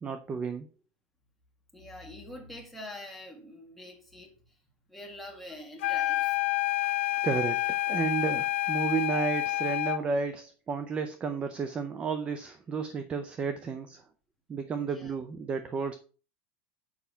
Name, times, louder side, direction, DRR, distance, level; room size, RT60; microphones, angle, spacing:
voice 1, 0.0-0.7 7.2-14.0 14.5-16.0, right 5 dB, 20° right, 0.5 m, -32 dB
voice 2, 1.7-4.6 4.9-6.4 14.8-15.1, left 1 dB, ahead, 1.9 m, -45 dB
sound 1, 5.8-10.1, left 16 dB, 90° left, 0.6 m, -28 dB
7.1 x 5.7 x 5.6 m
supercardioid pair, 160°, 6 cm